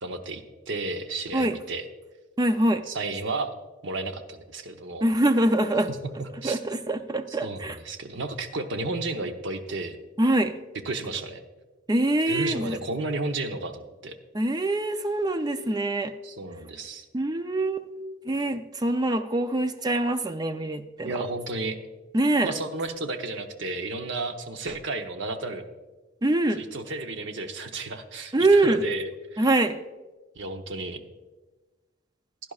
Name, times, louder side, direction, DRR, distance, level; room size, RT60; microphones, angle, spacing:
voice 1, 0.0-1.9 2.9-3.5 3.8-5.0 6.2-6.6 7.3-10.0 10.8-11.4 12.3-14.1 16.2-17.1 21.0-21.8 22.4-25.6 26.5-29.5 30.3-31.0, right 3 dB, 65° right, 6 dB, 0.9 m, -33 dB
voice 2, 2.4-2.8 5.0-5.9 6.4-7.8 10.2-10.5 11.9-12.8 14.3-16.1 17.1-17.9 18.3-21.2 22.1-22.5 26.2-26.6 28.3-28.8 29.4-29.8, right 2 dB, 20° right, 9 dB, 0.5 m, -24 dB
16.0 x 10.5 x 2.4 m, 1.2 s
head